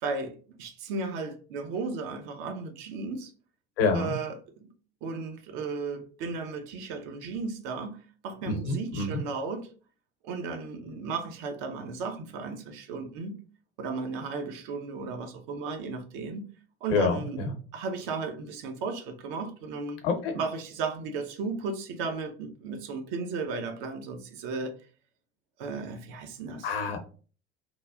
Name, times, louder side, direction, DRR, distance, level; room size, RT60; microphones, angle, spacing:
voice 1, 0.0-3.3 3.9-4.7 5.0-9.7 10.2-13.4 13.8-16.5 16.8-17.4 17.7-20.0 20.3-24.7 25.6-26.7, right 4 dB, 55° right, 0.6 m, -35 dB
voice 2, 3.8-4.1 8.5-9.2 16.9-17.6 20.0-20.4 26.6-27.0, left 4 dB, 65° left, 0.8 m, -27 dB
3.1 x 2.3 x 2.3 m
figure-of-eight pair, 65°, 32 cm